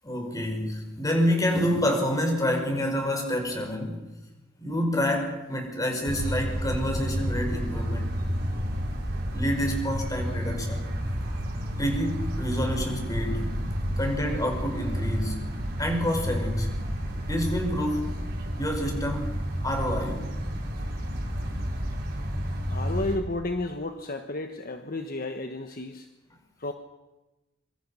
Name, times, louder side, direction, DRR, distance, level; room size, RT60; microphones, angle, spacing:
voice 1, 0.0-4.1 4.6-8.2 9.3-10.9 11.8-13.6 14.0-15.5 15.8-16.8 17.3-18.1 18.6-19.3 19.6-20.3, equal, 20° left, 3 dB, 5.3 m, -28 dB
sound 1, 6.0-23.2, equal, 55° right, 5.1 m, -30 dB
voice 2, 22.7-26.1 26.6-26.7, left 2 dB, 50° left, 6 dB, 1.3 m, -32 dB
25.5 x 24.0 x 5.7 m, 1.1 s
head